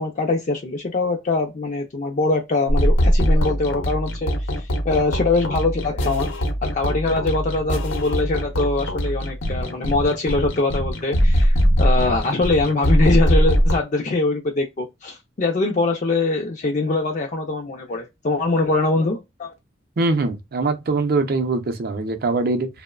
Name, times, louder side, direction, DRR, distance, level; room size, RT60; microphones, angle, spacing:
voice 1, 0.0-6.3 6.6-19.5, left 3 dB, 40° left, 0.4 m, -23 dB
sound 1, 2.7-13.8, equal, 80° left, 0.7 m, -21 dB
voice 2, 20.0-22.7, right 3 dB, 50° right, 0.5 m, -22 dB
2.9 x 2.1 x 2.3 m
head